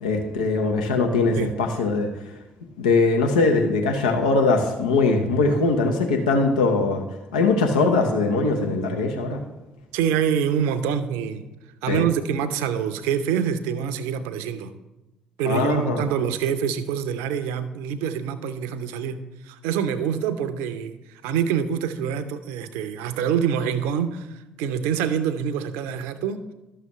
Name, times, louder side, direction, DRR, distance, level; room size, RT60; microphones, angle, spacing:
voice 1, 0.0-2.1 2.8-7.1 7.3-9.4 11.9-12.1 15.4-16.0, left 3 dB, 80° left, 3 dB, 0.7 m, -21 dB
voice 2, 9.9-11.5 11.8-14.7 15.4-26.4, right 8 dB, 70° right, 11 dB, 0.6 m, -26 dB
12.0 x 6.7 x 3.1 m, 1.0 s
figure-of-eight pair, 45°, 4 cm